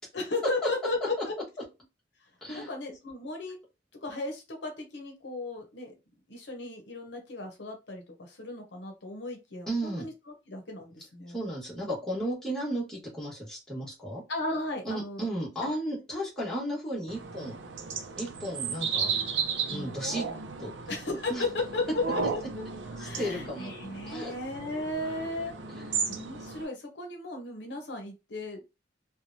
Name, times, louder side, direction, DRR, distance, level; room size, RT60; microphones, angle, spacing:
voice 1, 0.1-1.3 2.5-3.6 4.0-5.9 6.3-10.1 10.5-11.4 14.3-15.2 19.7-20.0 20.9-22.6 22.9-25.6 26.1-28.6, left 2 dB, 70° left, 3 dB, 0.7 m, -35 dB
voice 2, 9.7-10.1 11.3-14.2 14.8-17.6 18.2-19.1 19.7-20.2 20.6-20.7 21.3-21.4 23.0-23.7 24.1-24.3 25.7-26.0, right 1 dB, 5° left, -6 dB, 1.3 m, -34 dB
sound 1, 17.1-26.6, right 5 dB, 80° right, 0.5 m, -35 dB
3.0 x 2.2 x 2.6 m, 0.26 s
head